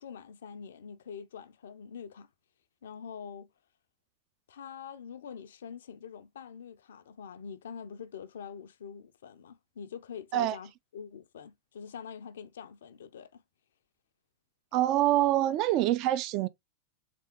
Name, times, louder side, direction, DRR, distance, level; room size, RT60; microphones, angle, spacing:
voice 1, 0.0-2.3 2.8-3.5 4.5-13.4, left 7 dB, 60° left, 0.4 m, -45 dB
voice 2, 14.7-16.5, right 14 dB, 40° right, 0.3 m, -25 dB
3.4 x 3.3 x 2.9 m
figure-of-eight pair, 90°, 0 cm